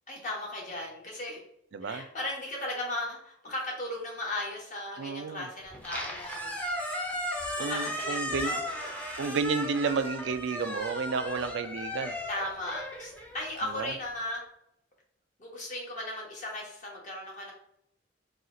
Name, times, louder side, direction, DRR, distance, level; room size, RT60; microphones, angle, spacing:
voice 1, 0.1-1.4 1.8-7.0 7.4-8.9 12.3-14.4 15.4-17.5, left 1 dB, 40° left, -2 dB, 1.2 m, -37 dB
voice 2, 1.7-2.0 5.0-5.5 7.6-8.6 9.2-12.2 13.7-13.9, right 4 dB, 65° right, 10 dB, 0.4 m, -31 dB
Squeak, 5.7-14.0, equal, 10° left, 0.7 m, -36 dB
4.2 x 2.4 x 3.8 m, 0.74 s
head